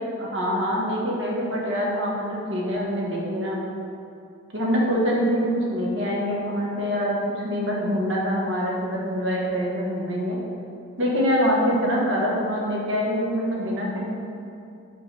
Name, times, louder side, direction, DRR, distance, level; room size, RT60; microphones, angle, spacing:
voice 1, 0.2-3.6 4.5-10.4 11.0-14.0, equal, 65° right, -3 dB, 1.2 m, -25 dB
5.4 x 4.5 x 4.7 m, 2.6 s
head